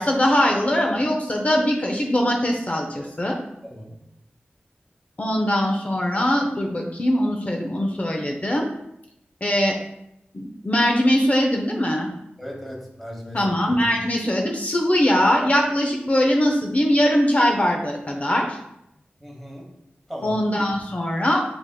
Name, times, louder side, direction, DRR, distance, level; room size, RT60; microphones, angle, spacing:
voice 1, 0.0-3.4 5.2-8.7 9.4-9.8 10.3-12.1 13.3-18.6 20.2-21.4, equal, 35° left, 1 dB, 0.5 m, -21 dB
voice 2, 3.6-4.1 12.4-13.4 19.2-19.7 20.1-20.4, equal, 5° left, -2 dB, 1.1 m, -37 dB
5.0 x 3.4 x 2.3 m, 0.80 s
wide cardioid pair, 60°, 4 cm